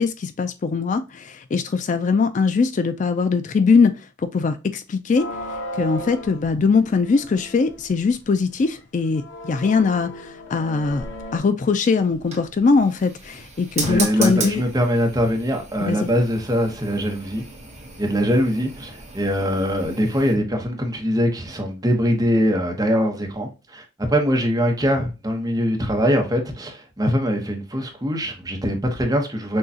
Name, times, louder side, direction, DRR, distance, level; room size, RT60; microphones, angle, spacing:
voice 1, 0.0-5.3 5.8-11.1 11.3-14.6 15.8-16.1, left 4 dB, 40° left, 0.3 m, -21 dB
sound 1, 5.2-8.1 8.6-8.7 9.1-11.4, equal, 90° left, 0.9 m, -35 dB
sound 2, 12.0-20.3, right 3 dB, 35° right, 1.4 m, -35 dB
voice 2, 13.9-17.4 18.0-29.6, equal, 20° right, 0.9 m, -22 dB
6.3 x 2.3 x 2.7 m
head